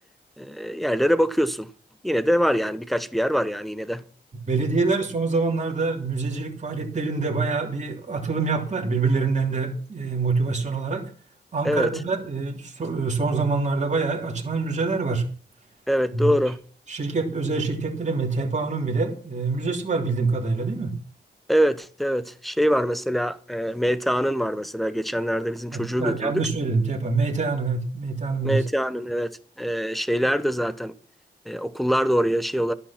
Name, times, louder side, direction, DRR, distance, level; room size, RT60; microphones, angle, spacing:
voice 1, 0.4-1.7 2.0-4.0 11.6-11.9 15.9-16.6 21.5-26.5 28.4-30.9 31.5-32.7, equal, ahead, 1.0 m, -24 dB
voice 2, 4.5-11.0 11.5-15.2 16.1-16.3 16.9-20.9 25.7-28.6, right 4 dB, 40° right, 3.3 m, -25 dB
13.0 x 10.5 x 6.0 m
wide cardioid pair, 115°, 18 cm